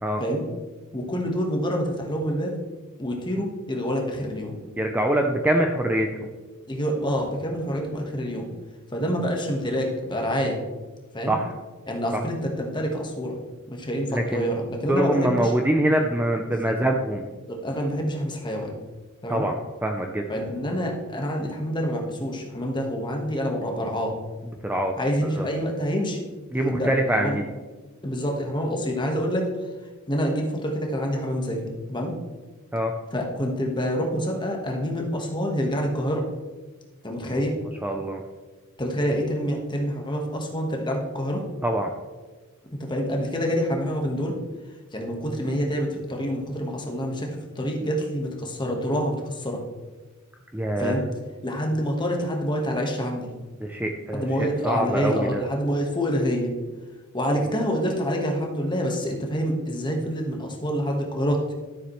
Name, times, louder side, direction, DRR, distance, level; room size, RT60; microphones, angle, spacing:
voice 1, 0.9-2.5 3.0-4.5 6.7-8.5 8.9-10.6 11.1-11.4 11.9-13.3 13.7-15.5 16.5-16.7 17.5-18.7 19.2-19.4 20.3-24.2 25.0-26.2 26.6-26.9 27.1-27.3 28.0-29.5 30.1-32.1 33.1-36.2 37.0-37.5 38.8-41.4 42.8-44.3 44.9-49.6 50.8-51.0 51.4-53.3 54.1-56.5 57.1-61.5, equal, 20° left, 1 dB, 1.4 m, -27 dB
voice 2, 4.8-6.1 11.3-11.5 14.1-14.5 14.9-17.3 19.3-19.5 19.8-20.3 24.6-24.9 25.4-25.5 26.5-27.4 32.7-32.9 37.8-38.2 41.6-41.9 50.5-51.0 53.6-55.4, right 1 dB, 10° right, 2 dB, 0.5 m, -24 dB
12.5 x 7.1 x 3.1 m, 1.3 s
head